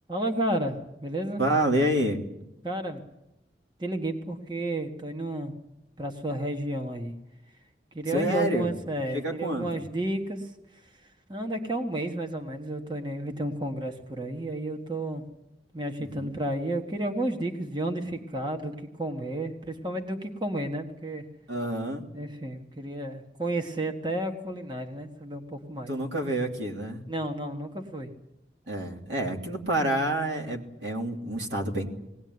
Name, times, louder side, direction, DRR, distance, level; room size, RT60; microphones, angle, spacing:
voice 1, 0.1-1.4 2.6-3.0 3.8-5.5 6.0-7.1 7.9-10.5 11.3-15.2 15.7-21.2 22.1-25.9 27.1-28.1, right 1 dB, 25° right, 5 dB, 1.6 m, -32 dB
voice 2, 1.4-2.2 8.1-8.8 9.1-9.9 16.0-16.3 21.5-22.0 25.9-27.0 28.7-31.9, right 1 dB, 85° right, 1 dB, 3.1 m, -28 dB
20.5 x 18.0 x 9.6 m, 0.89 s
head